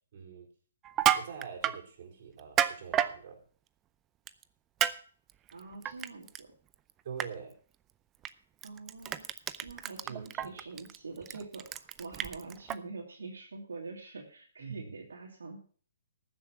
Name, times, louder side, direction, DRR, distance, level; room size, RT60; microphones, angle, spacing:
voice 1, 0.1-0.5 1.1-3.4 7.0-7.5 10.1-10.6 14.6-15.1, right 7 dB, 50° right, -1 dB, 4.6 m, -44 dB
Crushing, 0.8-1.8 2.4-3.1 4.3-4.4 4.8-4.9 5.3-6.4 6.7-6.9 7.2-7.3 8.2-8.3 8.6-12.7, right 11 dB, 20° right, 0.5 m, -30 dB
voice 2, 5.5-6.5 8.6-9.3 9.6-15.6, right 3 dB, 85° right, -1 dB, 2.7 m, -45 dB
13.5 x 7.4 x 5.9 m, 0.43 s
hypercardioid pair, 150°, 0 cm